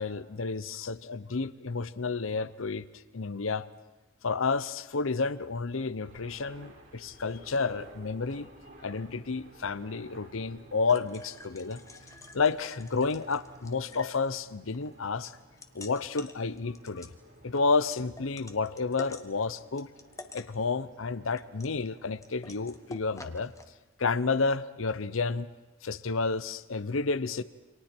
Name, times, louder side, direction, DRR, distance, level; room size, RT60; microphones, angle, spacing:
voice 1, 0.0-2.9 3.1-3.7 4.2-8.5 8.8-11.8 12.3-15.3 15.7-17.1 17.4-19.9 20.3-23.5 24.0-25.5 25.8-27.4, left 4 dB, 70° left, 15 dB, 0.8 m, -30 dB
sound 1, 6.0-23.6, right 1 dB, 60° right, 7.1 m, -55 dB
sound 2, 10.7-23.6, left 2 dB, 15° left, 1.2 m, -50 dB
29.0 x 26.5 x 4.5 m, 1.1 s
head